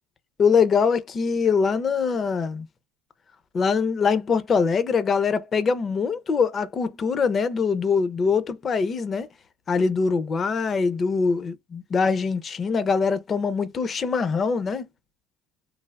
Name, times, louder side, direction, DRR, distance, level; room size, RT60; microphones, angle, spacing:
voice 1, 0.4-2.6 3.5-9.3 9.7-14.9, left 5 dB, 35° left, 0.5 m, -23 dB
3.3 x 2.1 x 2.3 m
supercardioid pair, 100°, 0 cm